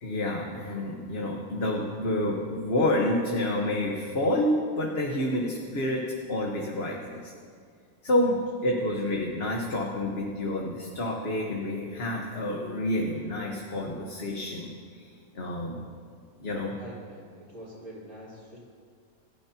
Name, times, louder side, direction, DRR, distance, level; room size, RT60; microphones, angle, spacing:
voice 1, 0.0-6.0 6.3-7.3 8.0-15.1 15.3-15.8 16.4-16.8, left 1 dB, 45° left, -1 dB, 1.5 m, -29 dB
voice 2, 16.8-18.6, equal, 35° right, -12 dB, 4.4 m, -45 dB
28.0 x 13.0 x 2.9 m, 2.1 s
omnidirectional pair, 1.5 m